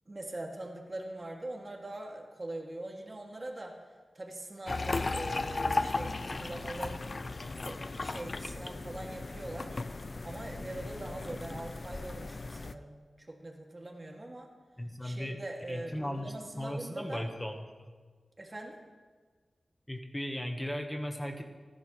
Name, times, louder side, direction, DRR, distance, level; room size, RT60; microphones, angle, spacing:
voice 1, 0.1-3.8 4.1-7.0 7.6-9.8 10.2-14.5 15.0-17.3 18.4-18.8, right 1 dB, 35° right, 0 dB, 2.5 m, -42 dB
sound 1, 4.7-12.7, left 3 dB, 45° left, 0.6 m, -36 dB
voice 2, 14.8-15.4 15.7-17.6 19.9-21.4, equal, 15° left, 3 dB, 1.4 m, -36 dB
28.0 x 11.0 x 3.3 m, 1.5 s
cardioid pair, 60°, 0 cm